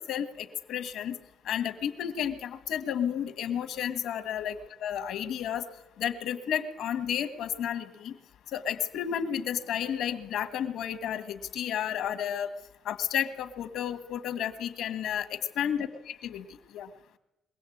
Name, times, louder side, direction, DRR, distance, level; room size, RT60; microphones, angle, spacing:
voice 1, 0.1-1.2 1.5-5.6 6.0-8.1 8.5-12.5 12.9-15.9 16.2-16.4 16.7-16.9, left 9 dB, 80° left, 9 dB, 1.8 m, -32 dB
23.0 x 17.0 x 8.7 m, 0.95 s
cardioid pair, 95°, 0 cm